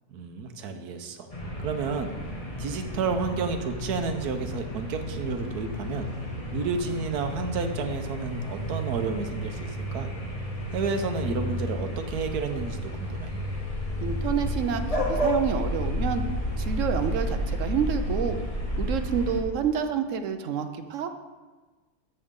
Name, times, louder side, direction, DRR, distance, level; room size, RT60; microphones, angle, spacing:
voice 1, 0.1-1.3 1.6-2.1 2.6-6.1 6.5-10.1 10.7-13.3, right 5 dB, 80° right, 6 dB, 1.4 m, -31 dB
sound 1, 1.3-19.4, equal, 25° left, 1.4 m, -31 dB
voice 2, 14.0-16.2 16.6-18.4 18.8-21.1, right 7 dB, 60° right, 7 dB, 1.0 m, -28 dB
13.0 x 6.8 x 3.7 m, 1.3 s
omnidirectional pair, 1.6 m